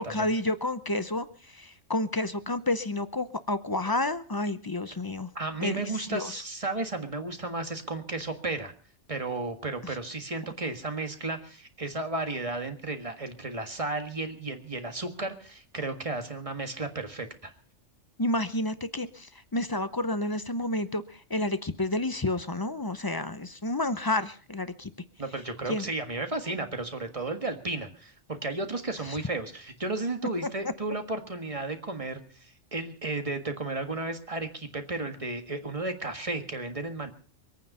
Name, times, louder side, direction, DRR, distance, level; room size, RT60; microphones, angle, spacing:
voice 1, 0.0-5.3 5.6-5.8 6.1-6.3 18.2-24.9 25.7-25.9 29.1-29.2, left 2 dB, 25° left, 13 dB, 0.5 m, -30 dB
voice 2, 5.3-8.7 9.1-17.5 25.2-37.1, right 2 dB, 30° right, 6 dB, 1.7 m, -33 dB
24.0 x 9.2 x 5.5 m, 0.43 s
omnidirectional pair, 1.2 m